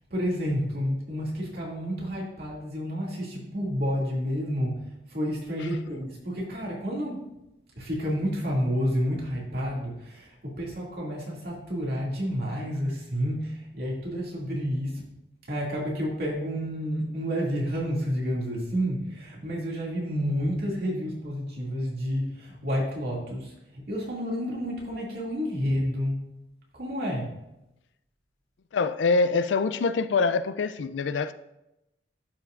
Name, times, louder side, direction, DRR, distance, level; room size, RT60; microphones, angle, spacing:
voice 1, 0.1-4.8 5.1-7.2 7.8-15.0 15.5-26.3 26.8-27.3, equal, 60° right, -4 dB, 2.4 m, -30 dB
voice 2, 28.7-31.3, left 4 dB, 85° left, 13 dB, 0.4 m, -25 dB
11.5 x 5.7 x 2.5 m, 0.90 s
head